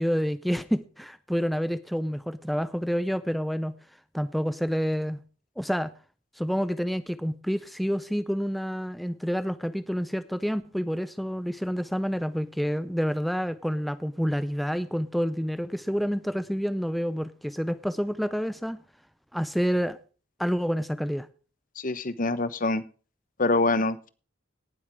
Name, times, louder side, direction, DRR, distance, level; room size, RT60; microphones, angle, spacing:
voice 1, 0.0-3.7 4.1-5.2 5.6-5.9 6.4-18.8 19.3-20.0 20.4-21.3, equal, ahead, 0.5 m, -28 dB
voice 2, 21.8-22.8 23.4-24.1, left 2 dB, 40° left, 1.0 m, -25 dB
18.5 x 7.9 x 3.6 m
head